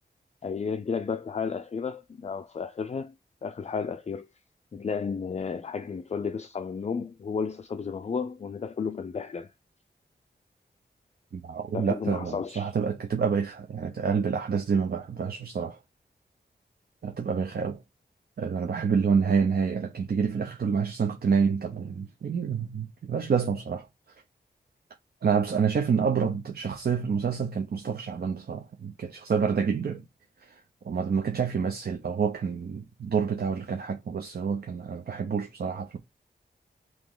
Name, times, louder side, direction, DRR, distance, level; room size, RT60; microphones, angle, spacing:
voice 1, 0.4-3.1 3.4-4.3 4.7-9.5 11.7-12.7, left 5 dB, 40° left, 0.4 m, -32 dB
voice 2, 11.3-15.8 17.0-17.8 18.4-23.9 25.2-30.0 30.4-30.6 30.8-36.0, right 6 dB, 60° right, 0.6 m, -28 dB
3.0 x 2.9 x 3.7 m
cardioid pair, 55°, 18 cm